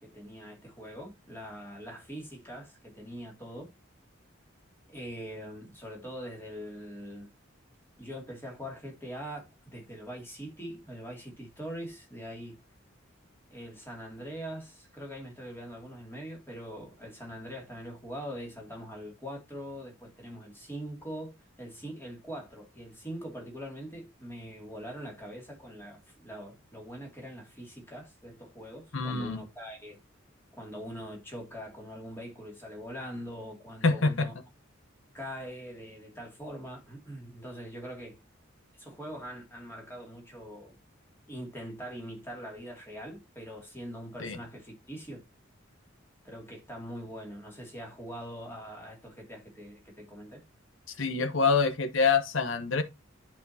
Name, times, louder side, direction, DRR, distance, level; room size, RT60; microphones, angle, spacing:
voice 1, 0.0-3.7 4.9-7.3 8.0-12.6 13.5-30.0 30.6-34.3 35.1-38.2 38.7-40.8 41.3-45.2 46.2-50.4, equal, 10° left, 2.3 m, -42 dB
voice 2, 28.9-29.4 33.8-34.3 44.2-44.4 51.0-52.8, left 4 dB, 70° left, 0.9 m, -26 dB
10.5 x 4.3 x 2.7 m
head